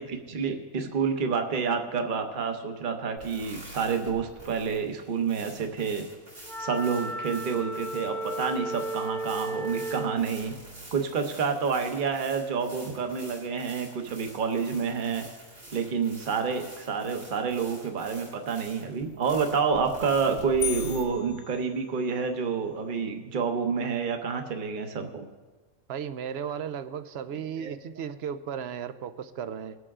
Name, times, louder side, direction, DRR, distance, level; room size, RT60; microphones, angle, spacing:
voice 1, 0.0-6.1 6.6-10.5 10.9-15.2 15.7-25.3 27.6-27.7, right 5 dB, 40° right, 6 dB, 1.0 m, -29 dB
sound 1, 3.2-21.0, right 1 dB, 85° right, 4.6 m, -46 dB
Wind instrument woodwind instrument, 6.5-10.2, right 1 dB, ahead, 0.8 m, -34 dB
sound 2, 20.6-22.4, left 9 dB, 75° left, 1.0 m, -38 dB
voice 2, 25.9-29.8, right 8 dB, 60° right, 12 dB, 0.7 m, -35 dB
21.0 x 7.8 x 3.7 m, 1.3 s
omnidirectional pair, 1.5 m